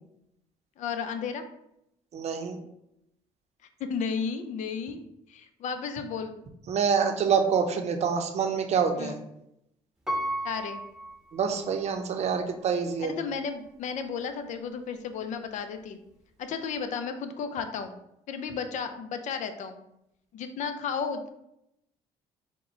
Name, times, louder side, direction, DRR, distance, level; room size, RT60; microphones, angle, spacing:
voice 1, 0.8-1.5 3.8-5.0 5.3-6.4 9.0-9.2 10.4-10.8 13.0-16.0 16.4-18.0 18.3-19.8 20.3-21.3, left 6 dB, 60° left, 8 dB, 0.5 m, -33 dB
voice 2, 2.1-2.6 6.7-9.1 11.3-13.1, right 6 dB, 50° right, 5 dB, 0.6 m, -26 dB
Piano, 10.1-12.0 12.6-12.7, right 1 dB, 5° right, 0.9 m, -34 dB
4.2 x 2.2 x 4.2 m, 0.81 s
supercardioid pair, 75°, 14 cm